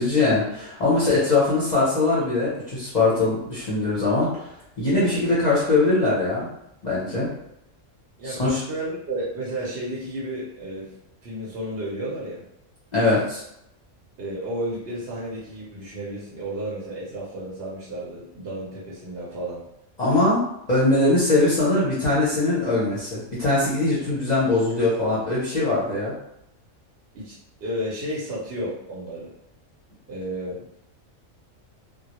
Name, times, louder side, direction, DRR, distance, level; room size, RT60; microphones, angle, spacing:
voice 1, 0.0-4.5 4.8-6.5 6.8-7.3 8.2-8.6 12.9-13.4 20.0-20.4 20.7-26.1, left 2 dB, 45° left, -8 dB, 0.6 m, -21 dB
voice 2, 8.2-10.9 11.2-12.4 14.2-19.6 27.1-27.3 27.6-29.3 30.1-30.8, right 1 dB, 60° right, -6 dB, 0.8 m, -32 dB
2.2 x 2.0 x 2.8 m, 0.82 s
omnidirectional pair, 1.4 m